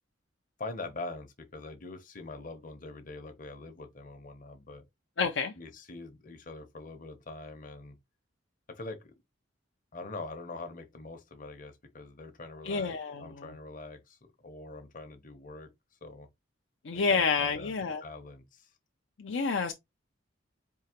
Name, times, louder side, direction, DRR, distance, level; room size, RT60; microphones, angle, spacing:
voice 1, 0.6-4.8 5.6-8.0 8.7-9.1 9.9-15.7 16.0-16.3 16.9-17.7 18.0-18.7, left 2 dB, 40° left, 0.9 m, -43 dB
voice 2, 5.2-5.5 12.6-13.5 16.8-18.0 19.2-19.7, left 5 dB, 65° left, 0.5 m, -29 dB
4.6 x 2.8 x 3.0 m
head